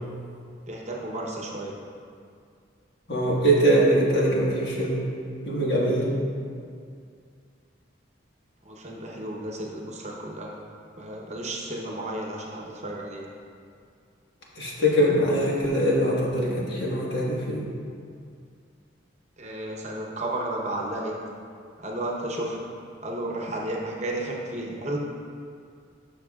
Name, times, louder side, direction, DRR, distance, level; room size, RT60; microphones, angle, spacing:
voice 1, 0.7-1.7 8.6-10.6 11.0-13.2 19.4-21.1 21.8-22.7 23.0-25.0, right 1 dB, 40° right, -2 dB, 0.9 m, -33 dB
voice 2, 3.1-5.1 5.4-6.2 14.5-17.7, right 1 dB, 60° left, -5 dB, 1.6 m, -22 dB
12.5 x 6.0 x 2.4 m, 2.3 s
head